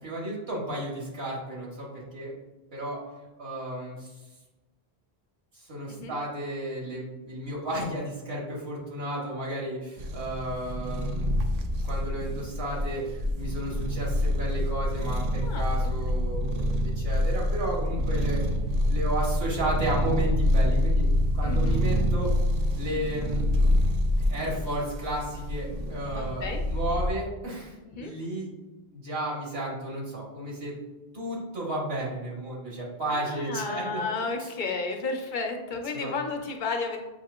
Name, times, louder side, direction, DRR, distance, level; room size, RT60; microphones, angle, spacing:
voice 1, 0.0-2.3 2.7-3.0 3.4-4.2 5.5-11.4 11.8-18.4 18.9-21.0 21.3-22.3 22.7-23.4 24.3-28.5 28.9-30.7 31.1-34.0 35.9-36.2, right 1 dB, 75° right, -4 dB, 1.5 m, -33 dB
sound 1, 10.0-27.1, left 1 dB, 55° right, 0.5 m, -26 dB
voice 2, 15.4-15.9 18.1-18.2 21.4-21.8 26.1-26.6 27.9-28.1 33.1-37.0, left 4 dB, 60° left, 4 dB, 0.7 m, -33 dB
6.8 x 2.7 x 2.4 m, 1.1 s
omnidirectional pair, 1.0 m